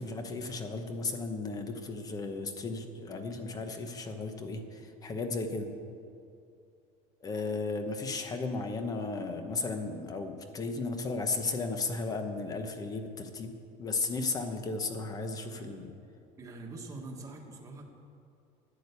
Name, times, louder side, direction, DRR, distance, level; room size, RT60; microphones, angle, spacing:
voice 1, 0.0-5.7 7.2-13.5 13.8-15.9, left 3 dB, 20° left, 6 dB, 1.0 m, -35 dB
voice 2, 16.4-17.9, right 2 dB, 20° right, 0 dB, 1.5 m, -44 dB
11.5 x 9.9 x 8.2 m, 2.5 s
cardioid pair, 170°, 17 cm